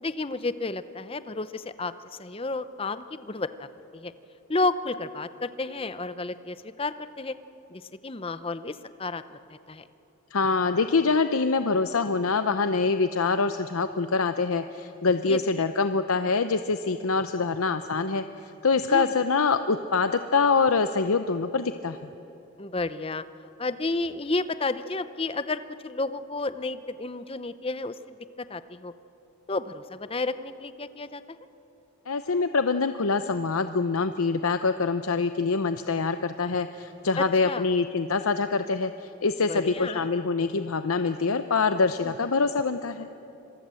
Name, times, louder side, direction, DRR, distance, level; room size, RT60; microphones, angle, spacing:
voice 1, 0.0-1.9 2.2-3.7 3.9-4.1 4.5-7.3 7.7-9.8 15.3-15.4 18.9-19.1 22.6-23.2 23.6-28.9 29.5-31.4 37.2-37.7 39.5-40.1 42.0-42.1, left 3 dB, 25° left, 13 dB, 0.7 m, -31 dB
voice 2, 10.3-18.2 18.6-22.0 32.1-43.1, left 4 dB, 85° left, 10 dB, 0.7 m, -25 dB
26.0 x 22.5 x 7.7 m, 3.0 s
head